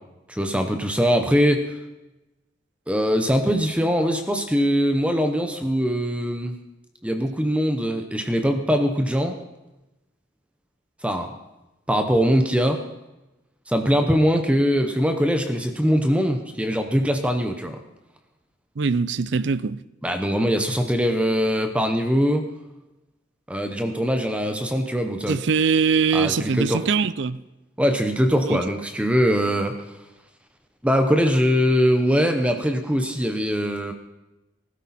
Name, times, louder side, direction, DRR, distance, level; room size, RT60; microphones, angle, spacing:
voice 1, 0.3-1.6 2.9-6.6 7.0-9.4 11.0-11.3 11.9-12.8 13.7-17.8 20.0-22.4 23.5-25.4 26.1-26.8 27.8-29.8 30.8-33.9, equal, 5° right, 0.9 m, -22 dB
voice 2, 18.8-19.8 25.3-27.4 28.4-28.6, right 5 dB, 65° right, 0.5 m, -22 dB
20.0 x 12.5 x 4.3 m
head